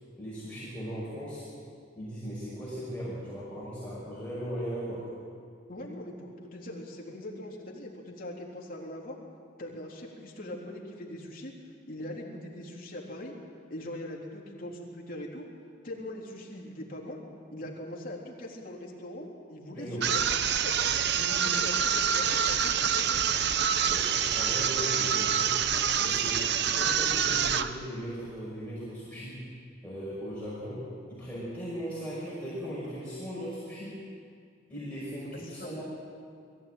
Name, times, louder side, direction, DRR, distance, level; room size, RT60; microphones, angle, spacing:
voice 1, 0.2-1.4 2.0-5.1 19.7-20.1 23.8-25.6 26.0-26.5 26.7-29.5 29.8-34.0 34.7-35.8, equal, 5° left, -9 dB, 5.7 m, -38 dB
voice 2, 5.7-9.2 9.6-11.5 11.9-13.3 13.7-15.5 15.8-17.2 17.5-20.8 21.1-23.2 35.4-35.7, left 1 dB, 45° left, -2 dB, 3.6 m, -41 dB
sound 1, 20.0-27.8, right 8 dB, 60° right, 0.8 m, -26 dB
22.5 x 15.5 x 9.3 m, 2.2 s
head